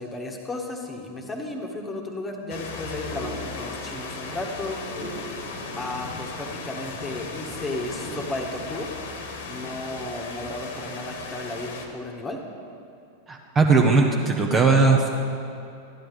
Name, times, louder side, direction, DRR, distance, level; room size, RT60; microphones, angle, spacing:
voice 1, 0.0-4.8 5.8-8.9 9.4-12.4, left 2 dB, 15° left, 1 dB, 1.5 m, -34 dB
sound 1, 2.5-11.9, left 3 dB, 55° left, 1.5 m, -36 dB
voice 2, 13.3-15.1, right 4 dB, 20° right, 2 dB, 1.0 m, -19 dB
13.5 x 10.5 x 4.8 m, 2.7 s
figure-of-eight pair, 90°, 0 cm